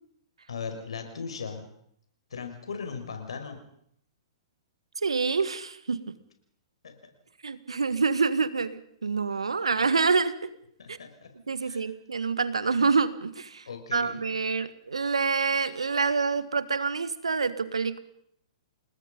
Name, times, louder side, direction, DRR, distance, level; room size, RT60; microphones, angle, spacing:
voice 1, 0.5-1.7 2.3-3.6 6.8-7.0 10.8-11.3 11.6-11.8 13.7-14.2, left 5 dB, 75° left, 5 dB, 5.6 m, -38 dB
voice 2, 5.0-6.1 7.4-10.5 10.9-11.0 11.5-18.0, right 4 dB, 80° right, 15 dB, 1.6 m, -27 dB
29.0 x 19.5 x 5.3 m, 0.71 s
hypercardioid pair, 115°, 3 cm